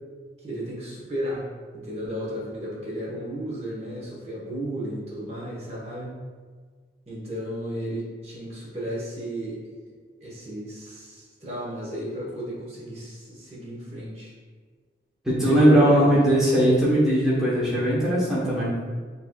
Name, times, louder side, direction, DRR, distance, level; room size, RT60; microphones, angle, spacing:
voice 1, 0.4-1.5 1.7-6.1 7.1-9.6 10.2-14.3 15.4-16.2, equal, 35° right, -5 dB, 0.9 m, -33 dB
voice 2, 15.2-18.7, right 1 dB, 5° right, -9 dB, 0.8 m, -19 dB
6.6 x 2.7 x 2.2 m, 1.5 s
head